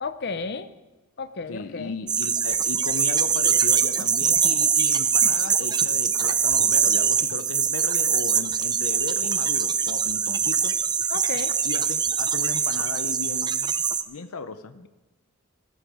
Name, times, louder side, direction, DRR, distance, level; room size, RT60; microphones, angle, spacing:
voice 1, 0.0-0.7 1.2-2.0 11.1-11.6 14.7-14.9, left 4 dB, 50° left, 11 dB, 0.8 m, -33 dB
voice 2, 1.5-10.8 11.6-13.7 14.1-14.8, left 4 dB, 90° left, 11 dB, 0.7 m, -36 dB
sound 1, 2.1-14.0, right 7 dB, 20° right, 0.5 m, -23 dB
14.5 x 13.5 x 5.0 m, 1.1 s
head